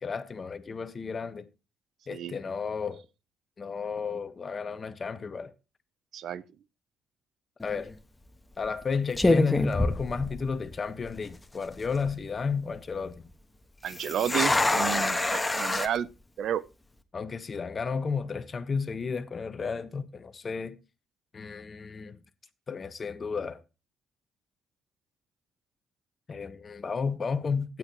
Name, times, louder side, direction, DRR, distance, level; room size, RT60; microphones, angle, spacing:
voice 1, 0.0-1.5 2.1-3.0 3.6-5.5 7.6-7.9 8.6-13.3 17.1-20.8 21.3-22.2 22.7-23.6 26.3-27.8, left 5 dB, 40° left, 1.3 m, -32 dB
sound 1, 7.6-7.9 8.6-8.8 9.2-10.7 11.0-11.1 11.7-12.1 13.9-15.9, left 2 dB, 15° left, 1.5 m, -26 dB
voice 2, 13.8-16.1 16.4-16.6, right 10 dB, 70° right, 0.6 m, -31 dB
15.5 x 9.1 x 3.0 m
cardioid pair, 90°, 0 cm